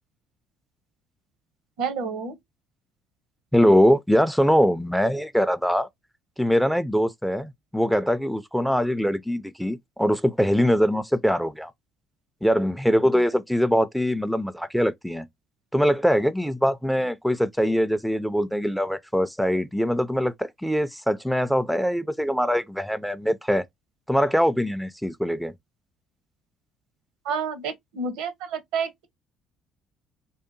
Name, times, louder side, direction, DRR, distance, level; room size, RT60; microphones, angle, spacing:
voice 1, 1.8-2.4 27.3-29.1, right 5 dB, 75° right, 0.6 m, -29 dB
voice 2, 3.5-5.9 6.4-11.7 12.4-15.3 15.7-23.6 24.1-25.5, equal, ahead, 0.3 m, -22 dB
2.7 x 2.2 x 2.4 m
hypercardioid pair, 65°, 0 cm